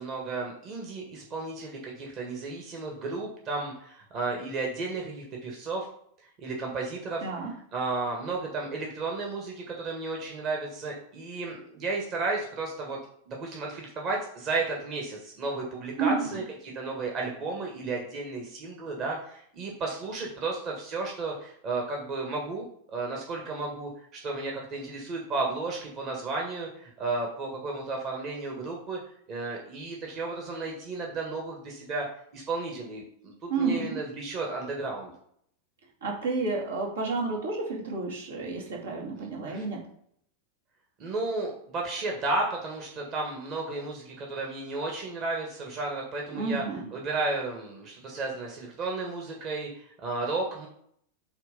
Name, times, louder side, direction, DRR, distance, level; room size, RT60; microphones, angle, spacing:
voice 1, 0.0-5.9 6.2-7.3 7.7-13.0 13.3-29.0 29.3-32.1 32.3-35.1 39.2-39.6 41.0-46.6 46.9-50.7, right 3 dB, 35° right, 0 dB, 1.7 m, -33 dB
voice 2, 7.2-7.5 16.0-16.4 33.5-34.0 36.0-39.8 46.3-46.9, right 4 dB, 70° right, -3 dB, 2.4 m, -30 dB
8.3 x 3.2 x 5.3 m, 0.68 s
figure-of-eight pair, 90°, 0 cm